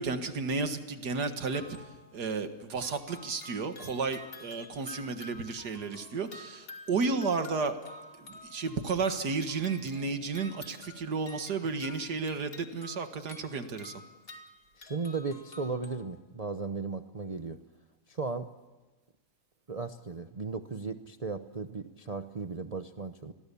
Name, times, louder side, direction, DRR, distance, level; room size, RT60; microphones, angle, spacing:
voice 1, 0.0-1.8 2.1-7.7 8.2-13.9, right 4 dB, 80° right, 8 dB, 2.3 m, -32 dB
sound 1, 1.5-2.3 2.7-16.2, left 2 dB, 35° left, 2.0 m, -50 dB
voice 2, 14.8-17.6 18.1-18.5 19.7-23.3, right 4 dB, 35° right, 7 dB, 0.7 m, -36 dB
28.5 x 21.0 x 7.0 m, 1.2 s
omnidirectional pair, 1.7 m